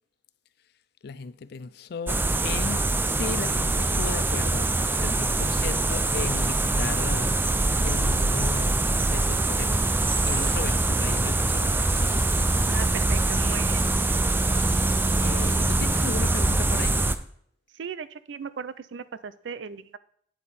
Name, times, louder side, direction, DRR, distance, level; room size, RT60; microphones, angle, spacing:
voice 1, 1.0-7.3 7.8-9.9 10.3-12.3 15.2-17.0, left 5 dB, 60° left, 0.4 m, -36 dB
sound 1, 2.1-17.2, right 2 dB, 10° right, 0.3 m, -24 dB
Hands / Sink (filling or washing), 9.7-16.1, right 3 dB, 65° right, 2.1 m, -47 dB
voice 2, 12.6-13.8 17.7-20.0, right 6 dB, 80° right, 0.4 m, -37 dB
8.8 x 5.1 x 4.2 m
head